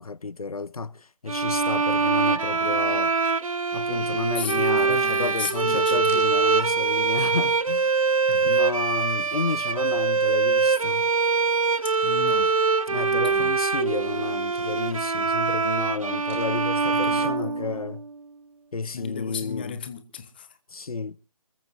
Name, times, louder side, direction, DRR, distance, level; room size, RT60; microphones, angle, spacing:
voice 1, 0.0-3.1 3.7-8.1 8.4-11.1 12.9-18.0 18.7-19.8 20.7-21.2, left 4 dB, 75° left, 1.0 m, -31 dB
sound 1, 1.3-18.1, right 4 dB, 65° right, 1.1 m, -23 dB
voice 2, 4.3-6.2 8.3-8.6 12.0-12.5 12.9-13.6 16.9-17.9 18.8-20.6, left 7 dB, 15° left, 1.1 m, -36 dB
sound 2, 4.5-18.9, right 3 dB, 20° right, 5.6 m, -60 dB
27.0 x 14.5 x 2.7 m
figure-of-eight pair, 170°, 19 cm